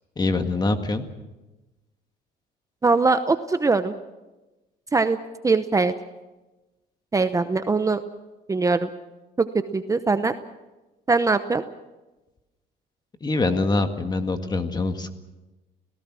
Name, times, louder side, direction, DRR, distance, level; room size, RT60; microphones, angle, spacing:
voice 1, 0.2-1.0 13.2-15.1, left 3 dB, 25° left, 7 dB, 2.0 m, -24 dB
voice 2, 2.8-3.9 4.9-5.2 5.4-5.9 7.1-8.0 8.5-8.9 9.4-9.5 9.7-10.3 11.1-11.6, right 3 dB, 20° right, 10 dB, 0.9 m, -21 dB
29.0 x 17.5 x 6.3 m, 1.1 s
cardioid pair, 110°, 17 cm